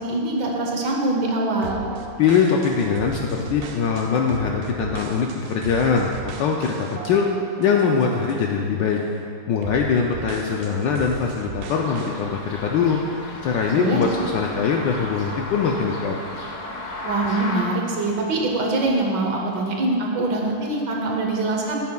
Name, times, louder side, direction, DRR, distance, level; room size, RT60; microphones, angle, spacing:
voice 1, 0.0-1.8 13.7-14.2 17.0-21.8, right 2 dB, 65° right, 0 dB, 1.3 m, -23 dB
sound 1, 1.6-8.6 9.0-9.2 9.6-12.2, right 6 dB, 85° right, 0.8 m, -37 dB
voice 2, 2.2-7.3 7.6-9.0 9.5-13.0 13.4-16.1, left 6 dB, 75° left, 0 dB, 1.1 m, -22 dB
sound 2, 11.7-17.6, left 2 dB, 50° left, 0.9 m, -34 dB
11.5 x 8.5 x 2.3 m, 2.4 s
omnidirectional pair, 2.4 m